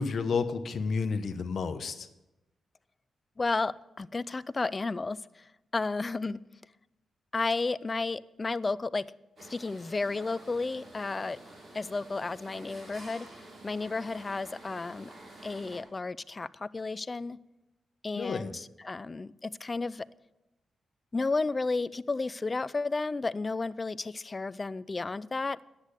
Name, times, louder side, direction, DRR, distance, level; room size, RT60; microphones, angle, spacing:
voice 1, 0.0-2.1 18.2-18.5, left 5 dB, 60° left, 10 dB, 0.9 m, -31 dB
voice 2, 3.4-5.4 5.7-6.4 7.3-9.1 9.4-11.4 11.7-13.3 13.6-15.1 15.4-17.4 18.0-20.1 21.1-25.6, left 3 dB, 25° left, 18 dB, 0.4 m, -32 dB
sound 1, 9.4-15.8, right 2 dB, 50° right, 4.3 m, -50 dB
10.0 x 8.1 x 8.2 m, 0.97 s
cardioid pair, 110°, 0 cm